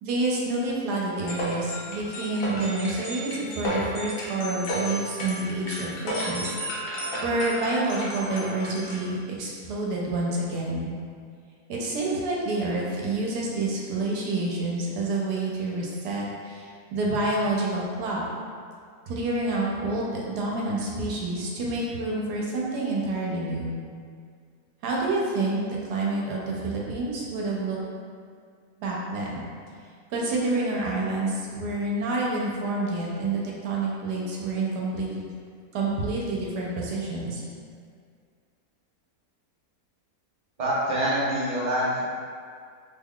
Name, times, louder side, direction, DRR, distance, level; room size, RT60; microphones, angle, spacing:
voice 1, 0.0-6.8 7.2-10.9 11.7-18.2 19.1-23.7 24.8-27.8 28.8-29.5 30.1-35.3 35.7-37.4, right 2 dB, 90° right, -3 dB, 1.2 m, -28 dB
sound 1, 1.2-9.1, equal, 75° left, 1.2 m, -33 dB
voice 2, 40.6-42.0, right 1 dB, 40° right, -8 dB, 0.7 m, -25 dB
3.6 x 3.2 x 2.3 m, 2.1 s
omnidirectional pair, 1.7 m